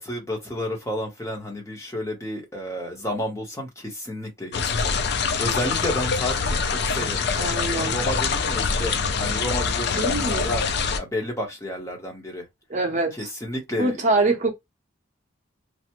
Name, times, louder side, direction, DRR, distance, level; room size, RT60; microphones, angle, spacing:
voice 1, 0.0-8.9 9.2-10.6 10.9-12.4 13.1-14.0, left 1 dB, 15° left, 0.7 m, -31 dB
sound 1, 4.5-11.0, left 5 dB, 50° left, 0.4 m, -25 dB
voice 2, 7.4-8.0 9.9-10.5 12.7-13.3 13.8-14.5, right 2 dB, 35° right, 0.7 m, -24 dB
3.2 x 2.0 x 2.9 m
head